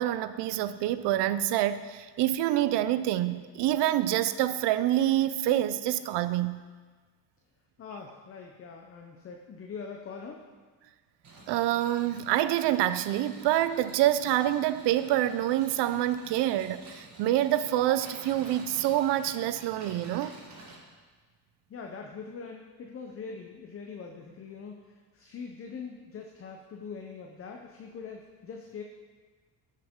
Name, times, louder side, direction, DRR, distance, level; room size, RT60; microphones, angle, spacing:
voice 1, 0.0-6.6 11.5-20.4, right 13 dB, 85° right, 13 dB, 0.6 m, -27 dB
voice 2, 7.8-10.5 21.7-28.8, left 5 dB, 35° left, 2 dB, 0.7 m, -42 dB
sound 1, 11.2-20.8, right 2 dB, 45° right, 1.8 m, -50 dB
11.0 x 6.6 x 3.6 m, 1.4 s
cardioid pair, 135°, 40 cm